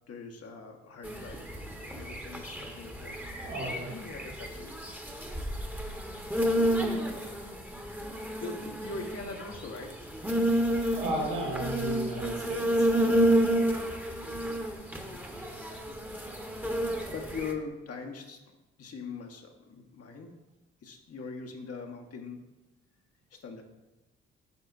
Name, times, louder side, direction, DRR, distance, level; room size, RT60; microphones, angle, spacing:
voice 1, 0.1-3.2 3.6-4.7 7.0-7.3 8.4-10.3 12.9-13.3 13.6-13.9 17.1-18.5 18.8-20.3 20.8-22.4 23.3-23.6, left 4 dB, 50° left, 3 dB, 1.1 m, -42 dB
sound 1, 1.0-17.5, right 1 dB, 5° right, 1.1 m, -30 dB
voice 2, 3.4-3.9 11.0-12.9, right 2 dB, 75° right, -3 dB, 1.9 m, -34 dB
8.3 x 5.5 x 2.5 m, 1.1 s
hypercardioid pair, 45°, 30 cm